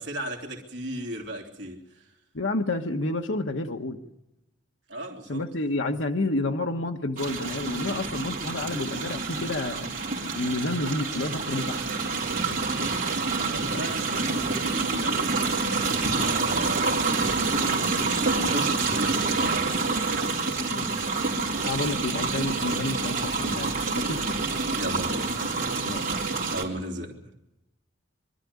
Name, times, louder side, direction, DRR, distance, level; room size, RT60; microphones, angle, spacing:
voice 1, 0.0-2.0 4.9-5.4 12.7-12.9 13.5-17.1 17.9-19.9 24.7-25.6 26.5-27.3, right 1 dB, 65° right, 3.1 m, -36 dB
voice 2, 2.3-4.0 5.3-9.9 10.3-11.8 13.7-13.9 21.6-24.2 25.8-26.1, left 2 dB, 75° left, 1.3 m, -29 dB
sound 1, 7.2-26.6, right 3 dB, 45° right, 3.8 m, -27 dB
24.0 x 13.0 x 9.6 m
head